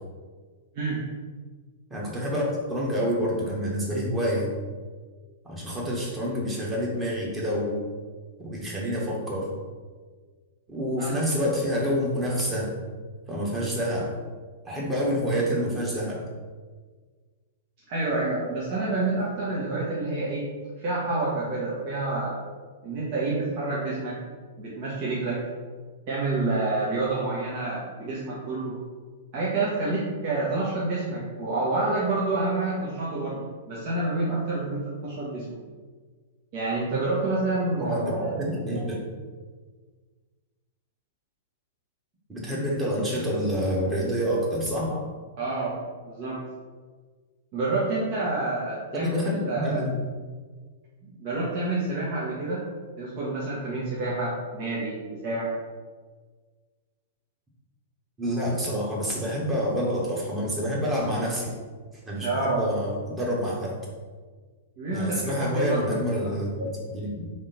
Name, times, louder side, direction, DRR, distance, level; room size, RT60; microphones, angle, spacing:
voice 1, 1.9-4.5 5.4-7.8 8.4-9.5 10.7-12.7 13.3-14.1 14.6-16.2 37.7-39.0 42.3-45.0 48.9-49.9 58.2-61.5 62.1-63.7 64.9-67.3, equal, 15° right, -4 dB, 1.3 m, -27 dB
voice 2, 17.9-20.5 20.8-22.3 22.8-24.2 24.6-25.4 26.1-28.8 29.3-33.4 33.7-35.4 36.5-38.8 45.4-45.7 46.0-46.4 47.5-49.2 49.4-49.8 51.0-52.6 53.0-55.5 62.2-62.6 64.8-65.9 66.2-66.3, right 2 dB, 45° right, -7 dB, 1.1 m, -28 dB
3.6 x 3.3 x 4.2 m, 1.5 s
figure-of-eight pair, 100°, 0 cm